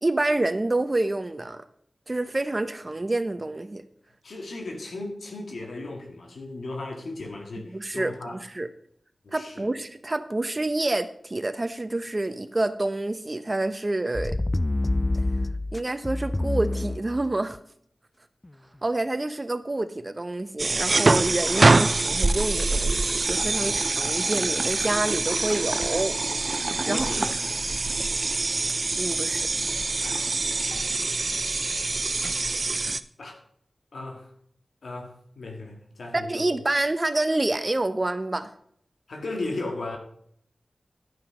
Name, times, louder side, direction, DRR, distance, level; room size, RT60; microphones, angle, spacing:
voice 1, 0.0-1.6 2.1-3.8 7.7-8.7 9.3-14.4 15.7-17.6 18.8-26.1 26.4-26.5 26.9-27.0 29.0-29.5 36.2-38.5, right 2 dB, 35° right, 11 dB, 0.8 m, -28 dB
voice 2, 4.2-8.4 9.2-9.7 26.8-27.4 30.0-30.3 30.7-30.8 33.2-33.4 33.9-34.3 34.8-36.6 39.1-40.0, left 2 dB, 85° left, 3 dB, 1.8 m, -36 dB
sound 1, 14.1-17.5 18.4-18.5, left 2 dB, 30° left, 0.3 m, -27 dB
sound 2, 20.6-33.0, right 3 dB, 55° right, 0.5 m, -25 dB
11.5 x 5.8 x 5.0 m, 0.65 s
cardioid pair, 45°, 0 cm